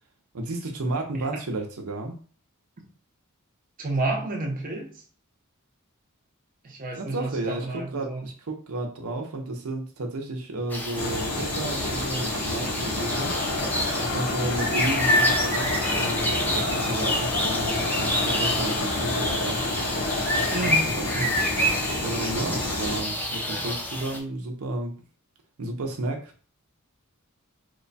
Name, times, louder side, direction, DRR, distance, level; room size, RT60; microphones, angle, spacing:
voice 1, 0.3-2.2 6.9-13.3 14.0-19.7 20.6-21.7 22.0-25.0 25.6-26.3, right 2 dB, 80° right, 0.7 m, -32 dB
voice 2, 3.8-4.9 6.6-8.3 20.5-21.0, right 2 dB, 40° right, 0.7 m, -30 dB
sound 1, 10.7-24.2, left 1 dB, 10° left, 0.5 m, -28 dB
sound 2, 10.9-23.0, left 2 dB, 90° left, 0.9 m, -30 dB
Crowd, 12.9-21.0, left 3 dB, 50° left, 0.6 m, -33 dB
3.0 x 2.2 x 4.0 m
head